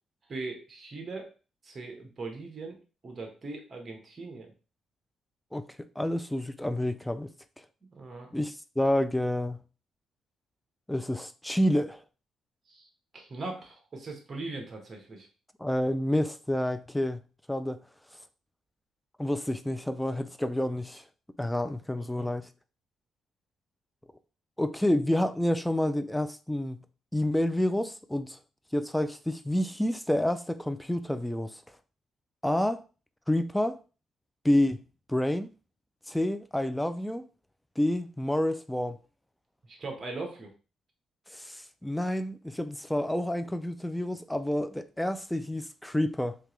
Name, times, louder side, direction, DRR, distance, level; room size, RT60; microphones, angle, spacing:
voice 1, 0.3-1.3 1.6-2.8 3.0-4.5 7.9-8.3 12.7-12.9 13.1-15.3 22.1-22.3 39.6-40.5, right 3 dB, 35° right, 1.2 m, -40 dB
voice 2, 6.0-7.3 8.3-9.6 10.9-12.0 15.6-17.2 17.5-17.8 19.2-21.0 21.4-22.5 24.6-26.8 27.1-28.4 28.7-31.6 32.4-32.8 33.3-33.8 34.4-35.5 36.1-37.3 37.8-39.0 41.3-46.4, left 1 dB, 5° left, 0.3 m, -29 dB
3.5 x 2.8 x 3.1 m
cardioid pair, 90°, 0 cm